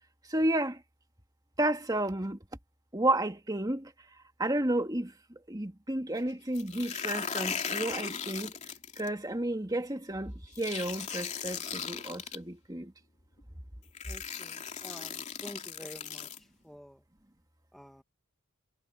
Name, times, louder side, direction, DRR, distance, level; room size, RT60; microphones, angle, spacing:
voice 1, 0.3-0.8 1.6-2.4 2.9-3.9 4.4-5.1 5.5-8.6 9.0-12.9, right 1 dB, 20° right, 2.2 m, -31 dB
sound 1, 6.5-9.1 10.6-12.4 13.4-13.5 13.9-16.4, left 6 dB, 35° left, 2.9 m, -37 dB
voice 2, 14.1-14.6 14.8-15.2 15.4-16.3 16.7-16.9 17.7-18.0, equal, ahead, 1.4 m, -47 dB
head